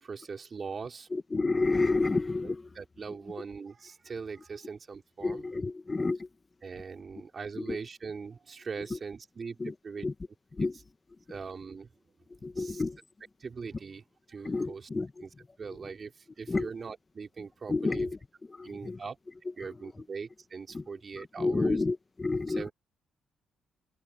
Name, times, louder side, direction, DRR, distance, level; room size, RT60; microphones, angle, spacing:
voice 1, 0.0-1.1 2.4-5.5 6.6-10.0 10.7-10.8 11.3-11.9 12.6-12.8 13.4-14.9 15.2-18.1 18.6-19.2 19.6-21.8 22.5-22.7, right 5 dB, 40° right, 3.9 m, -41 dB
voice 2, 1.1-2.8 3.1-3.2 5.2-6.3 6.8-6.9 7.5-7.8 8.9-9.0 9.6-10.1 10.5-10.8 11.1-11.4 12.3-13.0 14.4-15.2 16.5-16.7 17.7-19.0 19.4-20.1 20.7-20.9 21.1-22.7, left 3 dB, 25° left, 1.6 m, -31 dB
cardioid pair, 90°, 0 cm